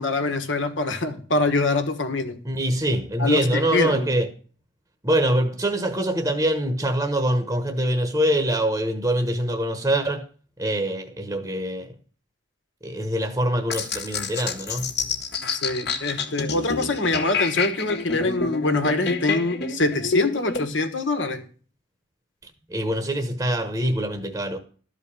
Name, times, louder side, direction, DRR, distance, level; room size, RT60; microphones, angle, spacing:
voice 1, 0.0-2.4 3.2-4.1 15.5-21.4, left 2 dB, 75° left, 1.6 m, -24 dB
voice 2, 2.4-4.3 5.0-10.3 10.6-11.9 12.8-14.9 22.7-24.6, right 1 dB, 15° right, 1.1 m, -24 dB
sound 1, 13.7-20.6, left 5 dB, 60° left, 1.6 m, -28 dB
13.0 x 4.9 x 8.6 m
head